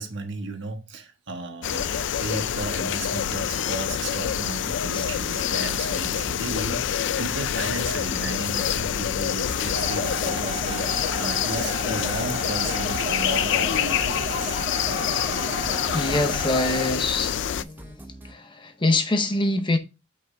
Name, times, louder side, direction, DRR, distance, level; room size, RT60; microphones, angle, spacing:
voice 1, 0.0-14.5, right 3 dB, 60° right, 1.3 m, -34 dB
sound 1, 1.6-17.6, left 9 dB, 60° left, 0.4 m, -26 dB
sound 2, 5.8-18.3, right 1 dB, 10° right, 0.8 m, -44 dB
sound 3, 9.8-16.9, right 3 dB, 30° right, 1.4 m, -34 dB
voice 2, 15.9-19.8, left 2 dB, 25° left, 0.7 m, -25 dB
5.9 x 5.7 x 3.3 m
head